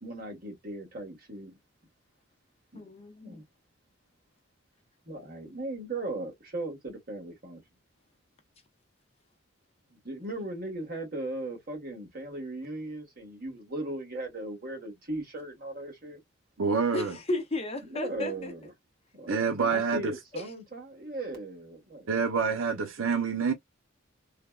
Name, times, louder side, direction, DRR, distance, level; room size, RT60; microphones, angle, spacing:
voice 1, 0.0-1.5 2.7-2.8 3.2-3.4 5.0-7.6 9.9-16.2 17.9-18.7 19.1-22.1, right 2 dB, 45° right, 1.6 m, -38 dB
voice 2, 2.7-3.4 16.9-18.5 20.3-20.5, left 2 dB, 30° left, 0.8 m, -34 dB
voice 3, 16.6-17.2 19.3-20.1 22.1-23.5, right 5 dB, 80° right, 0.7 m, -27 dB
3.3 x 2.2 x 2.3 m
head